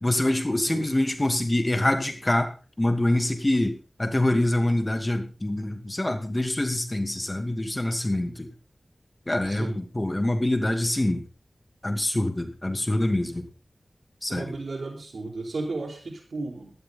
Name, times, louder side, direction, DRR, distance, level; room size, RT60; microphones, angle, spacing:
voice 1, 0.0-2.5 2.8-8.5 9.3-11.2 11.8-13.4 14.2-14.5, left 1 dB, 25° left, 5 dB, 2.5 m, -25 dB
voice 2, 9.5-9.8 14.3-16.7, right 3 dB, 90° right, 1 dB, 4.6 m, -34 dB
16.5 x 12.0 x 4.0 m, 0.34 s
wide cardioid pair, 90°, 0 cm